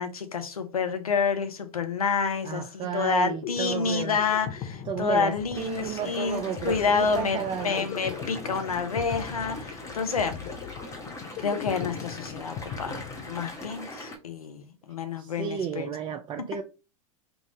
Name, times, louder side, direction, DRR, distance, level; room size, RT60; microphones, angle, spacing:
voice 1, 0.0-10.5 11.4-15.9, left 5 dB, 85° left, 0.8 m, -28 dB
voice 2, 2.4-4.2 4.9-7.9 15.2-16.6, right 8 dB, 25° right, 0.4 m, -32 dB
sound 1, 3.3-13.8, left 8 dB, 40° left, 0.6 m, -40 dB
sound 2, 5.5-14.2, left 1 dB, 15° left, 1.1 m, -41 dB
3.9 x 2.4 x 3.7 m
hypercardioid pair, 90°, 18 cm